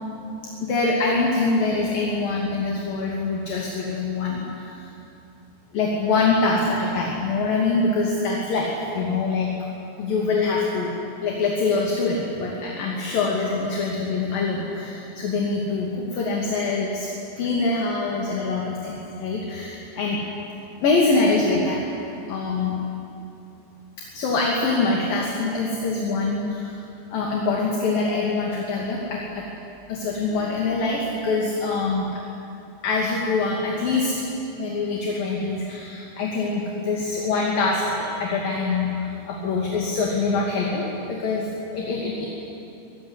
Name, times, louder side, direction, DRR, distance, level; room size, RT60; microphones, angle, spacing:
voice 1, 0.7-4.8 5.7-9.5 10.0-10.9 11.2-17.1 17.4-20.2 20.8-21.8 22.3-22.8 24.1-26.7 27.1-29.4 29.9-32.2 32.8-34.1 34.6-41.5 41.7-42.3, left 3 dB, 50° left, -2 dB, 3.9 m, -24 dB
23.5 x 22.5 x 9.8 m, 2.8 s
omnidirectional pair, 5.7 m